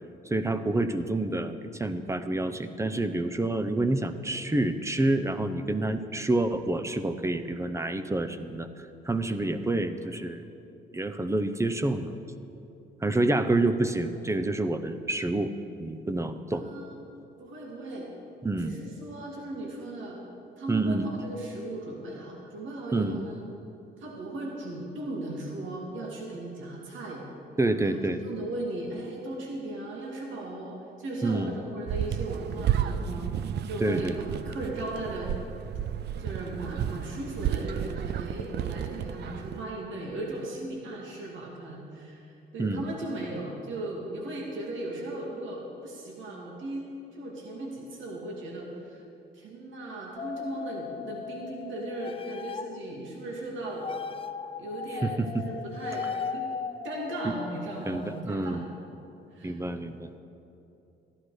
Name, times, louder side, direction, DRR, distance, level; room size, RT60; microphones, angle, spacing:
voice 1, 0.3-10.5 10.9-12.2 13.0-15.5 15.8-16.6 18.4-18.7 20.7-21.1 22.9-23.2 27.6-28.2 31.2-31.6 33.8-34.2 42.6-42.8 55.0-55.4 57.8-58.7 59.4-60.1, right 2 dB, 15° right, 10 dB, 0.7 m, -28 dB
voice 2, 16.5-17.0 17.4-18.1 18.6-20.2 20.6-23.3 24.0-27.3 27.8-35.3 36.2-49.0 49.3-53.9 54.6-56.5 56.8-58.7 59.3-59.6, right 1 dB, 75° right, -2 dB, 2.2 m, -37 dB
sound 1, 31.9-39.6, right 9 dB, 60° right, 0.5 m, -32 dB
sound 2, 50.2-52.8 53.7-58.2, left 6 dB, 30° left, 0.4 m, -37 dB
13.5 x 11.5 x 4.9 m, 2.8 s
cardioid pair, 90°, 20 cm